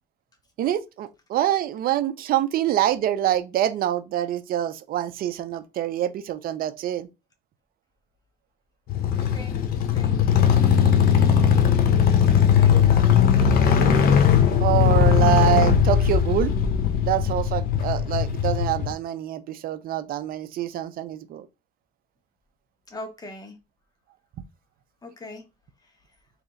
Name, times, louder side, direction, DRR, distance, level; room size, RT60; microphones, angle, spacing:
voice 1, 0.6-7.1 14.6-16.5 17.0-21.5, right 12 dB, 60° right, 0.5 m, -25 dB
sound 1, 8.9-18.9, left 8 dB, 60° left, 0.7 m, -19 dB
voice 2, 9.2-13.1 22.9-23.6 25.0-25.5, left 2 dB, 20° left, 1.1 m, -42 dB
3.2 x 2.9 x 3.8 m
cardioid pair, 110°, 17 cm